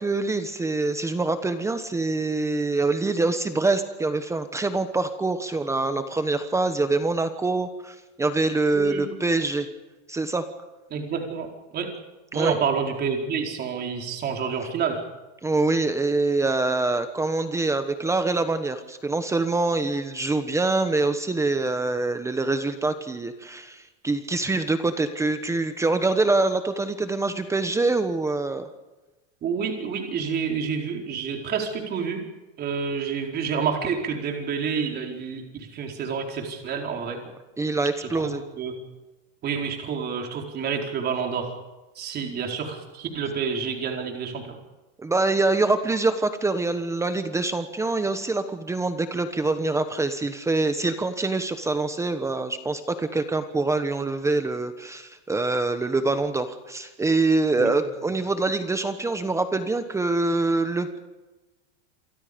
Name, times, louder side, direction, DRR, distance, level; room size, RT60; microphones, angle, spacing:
voice 1, 0.0-9.7 10.1-10.4 12.3-12.6 15.4-28.7 37.6-38.4 45.0-61.0, right 3 dB, 10° right, 9 dB, 1.1 m, -25 dB
voice 2, 8.7-9.0 10.9-11.5 11.7-11.9 12.3-15.0 29.4-32.2 32.6-37.2 38.0-38.8 39.4-41.5 41.9-44.5 57.6-57.7, right 6 dB, 25° right, 2 dB, 4.4 m, -28 dB
28.0 x 24.5 x 5.2 m, 1.1 s
supercardioid pair, 155°, 35 cm